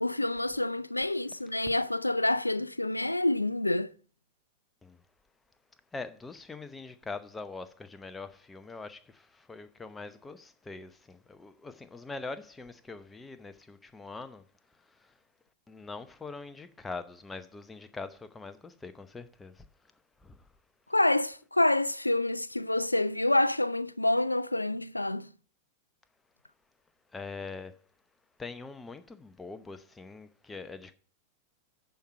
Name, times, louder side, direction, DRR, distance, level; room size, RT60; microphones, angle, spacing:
voice 1, 0.0-3.9 20.9-25.3, left 1 dB, 85° left, 0.4 m, -27 dB
voice 2, 5.9-14.4 15.7-19.6 20.2-20.4 27.1-27.7 28.4-30.9, left 3 dB, 10° left, 0.8 m, -43 dB
10.5 x 4.6 x 5.3 m
figure-of-eight pair, 90°, 0 cm